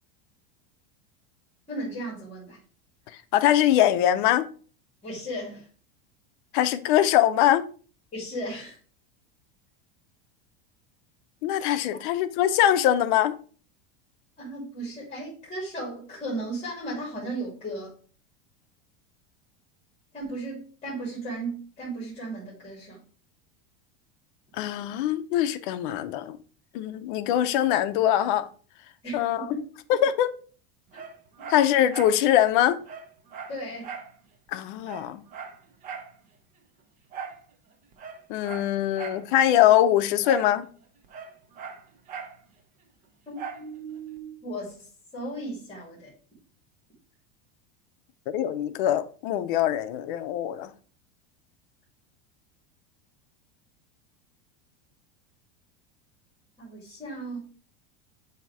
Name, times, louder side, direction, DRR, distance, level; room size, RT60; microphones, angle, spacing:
voice 1, 1.7-2.6 5.0-5.7 8.1-8.8 14.4-17.9 20.1-23.0 29.0-29.6 33.5-33.9 43.3-44.9 45.1-46.1 56.6-57.5, right 1 dB, 20° left, 2.6 m, -35 dB
voice 2, 3.3-4.5 6.5-7.6 11.4-13.4 24.6-26.4 26.7-28.5 29.1-29.4 30.0-30.3 31.5-32.8 34.5-35.2 38.3-40.7 48.3-50.7, left 11 dB, 55° left, 0.6 m, -22 dB
Dog, 30.9-32.2 32.5-32.6 32.8-34.1 34.5-34.6 34.8-36.1 37.1-37.4 37.9-39.3 40.2-40.6 40.8-42.4 43.4-43.7 44.2-44.3, right 6 dB, 25° right, 0.6 m, -39 dB
7.5 x 2.8 x 4.6 m
supercardioid pair, 165°, 31 cm